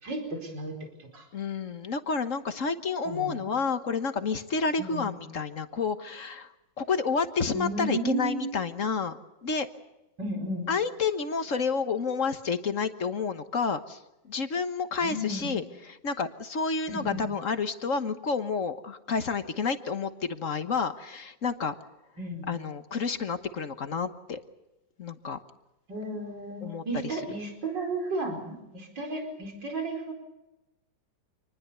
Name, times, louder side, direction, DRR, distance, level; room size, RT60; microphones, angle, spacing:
voice 1, 0.0-0.7 1.1-1.3 3.0-3.5 4.8-5.2 7.5-8.5 10.2-10.7 15.0-15.6 16.9-17.2 22.2-22.5 25.9-30.1, right 2 dB, 65° right, 3 dB, 5.3 m, -33 dB
voice 2, 1.3-9.7 10.7-14.0 14.3-21.7 22.5-24.4 25.0-25.4 26.6-27.2, left 5 dB, 45° left, 10 dB, 1.4 m, -30 dB
27.0 x 20.0 x 6.9 m, 0.98 s
omnidirectional pair, 2.1 m